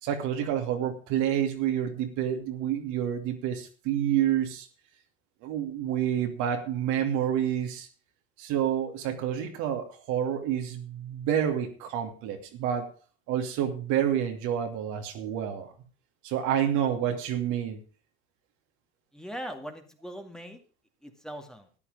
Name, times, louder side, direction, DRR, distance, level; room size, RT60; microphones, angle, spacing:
voice 1, 0.0-4.7 5.4-7.9 8.4-12.9 13.3-15.7 16.2-17.8, right 10 dB, 65° right, 4 dB, 2.8 m, -28 dB
voice 2, 19.1-20.6 21.0-21.7, equal, ahead, 4 dB, 2.3 m, -40 dB
13.5 x 10.0 x 5.0 m, 0.35 s
hypercardioid pair, 80°, 32 cm